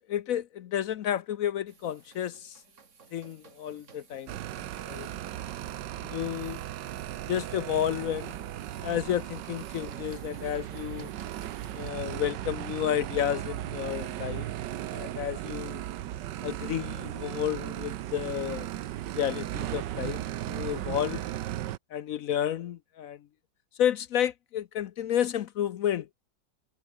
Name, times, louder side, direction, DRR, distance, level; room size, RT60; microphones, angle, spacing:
voice 1, 0.1-2.6 3.1-4.4 4.9-5.1 6.1-6.6 7.3-8.5 8.8-11.1 11.7-14.5 14.9-15.8 16.4-18.7 19.1-21.2 21.9-23.2 23.8-26.1, left 10 dB, 65° left, 0.9 m, -31 dB
sound 1, 1.7-11.9, right 5 dB, 40° right, 2.0 m, -55 dB
sound 2, 4.3-21.8, right 13 dB, 75° right, 1.4 m, -36 dB
omnidirectional pair, 2.0 m